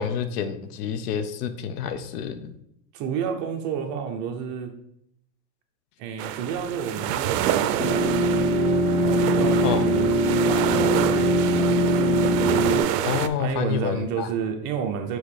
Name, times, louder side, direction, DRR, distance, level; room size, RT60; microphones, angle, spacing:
voice 1, 0.0-2.5 9.6-9.9 13.0-14.3, left 7 dB, 70° left, 11 dB, 0.8 m, -28 dB
voice 2, 2.9-4.7 6.0-8.0 8.9-10.1 10.5-12.1 13.4-15.2, right 7 dB, 40° right, 4 dB, 0.8 m, -31 dB
sound 1, 6.2-13.3, right 11 dB, 80° right, 0.6 m, -28 dB
sound 2, 7.8-12.8, right 1 dB, 35° left, 1.6 m, -21 dB
6.4 x 3.0 x 4.9 m, 0.75 s
supercardioid pair, 155°, 48 cm